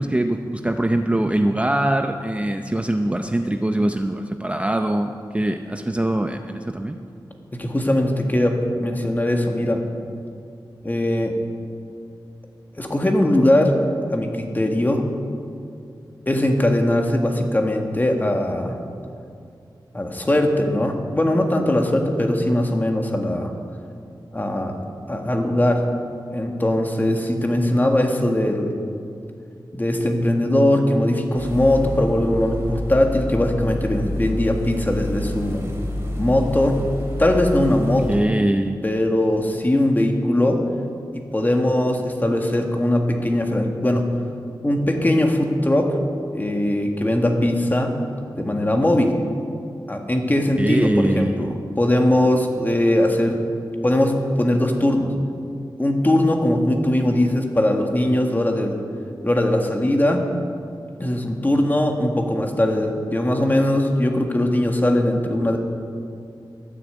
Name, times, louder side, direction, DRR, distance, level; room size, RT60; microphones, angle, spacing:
voice 1, 0.0-7.0 38.1-38.8 50.6-51.5, right 1 dB, 15° right, 5 dB, 0.6 m, -22 dB
voice 2, 7.5-9.8 10.8-11.3 12.8-13.7 14.1-15.0 16.2-18.8 19.9-23.5 24.3-24.8 25.1-25.9 26.3-28.7 29.7-35.7 36.2-36.8 37.2-38.2 38.8-40.6 41.1-44.1 44.6-45.9 46.3-47.9 48.4-49.1 49.9-53.4 53.8-55.1 55.8-58.8 59.2-60.2 61.0-65.6, left 1 dB, 25° left, 3 dB, 1.7 m, -20 dB
sound 1, 31.3-38.2, left 1 dB, 35° right, 3.5 m, -29 dB
12.0 x 9.8 x 8.0 m, 2.4 s
wide cardioid pair, 80°, 8 cm